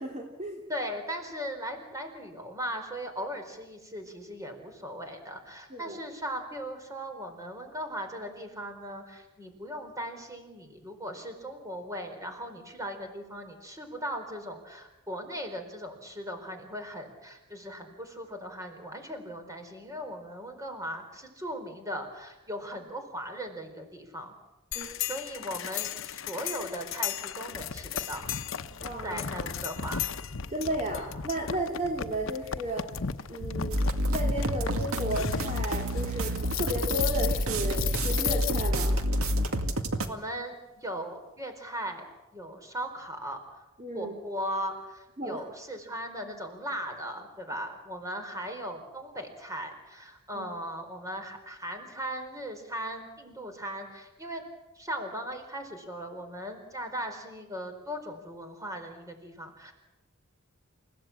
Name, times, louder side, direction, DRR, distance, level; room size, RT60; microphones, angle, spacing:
voice 1, 0.0-0.6 5.7-6.0 24.7-24.9 28.8-29.2 30.5-32.9 33.3-39.0 43.8-44.1 45.2-45.4 50.3-50.5, right 1 dB, 35° right, 0 dB, 2.7 m, -34 dB
voice 2, 0.7-24.3 24.7-28.2 29.0-30.0 40.1-42.0 42.3-43.4 43.9-54.4 54.7-59.7, equal, 15° right, 5 dB, 4.5 m, -38 dB
sound 1, 24.7-39.0, left 8 dB, 65° left, 0.9 m, -35 dB
sound 2, 33.7-40.1, equal, 90° right, 2.2 m, -28 dB
29.0 x 16.5 x 8.8 m, 1.0 s
head